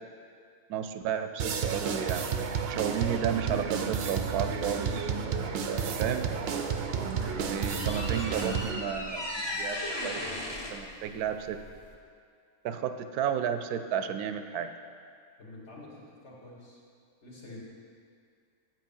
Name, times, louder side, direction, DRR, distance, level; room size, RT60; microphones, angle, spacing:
voice 1, 0.7-2.2 2.7-5.1 6.0-6.3 7.3-10.2 10.7-11.6 12.6-14.7, right 8 dB, 85° right, 8 dB, 1.1 m, -32 dB
sound 1, 1.4-8.8, right 6 dB, 60° right, 0.6 m, -31 dB
sound 2, 6.8-11.9, left 1 dB, 20° left, 0.7 m, -37 dB
voice 2, 15.4-16.8 17.2-17.6, left 2 dB, 50° left, -4 dB, 1.9 m, -48 dB
7.8 x 7.4 x 5.5 m, 2.3 s
omnidirectional pair, 1.6 m